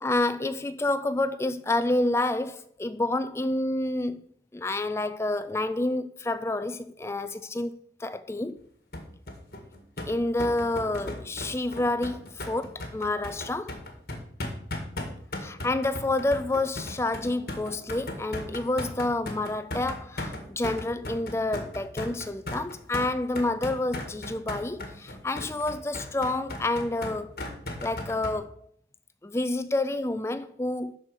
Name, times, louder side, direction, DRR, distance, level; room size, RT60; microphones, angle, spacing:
voice 1, 0.0-4.2 4.5-8.6 10.1-13.7 15.4-27.3 27.8-28.5 29.2-31.0, left 2 dB, 15° left, 0.4 m, -29 dB
sound 1, 8.9-28.3, left 1 dB, 60° left, 1.7 m, -37 dB
12.0 x 4.5 x 4.7 m
head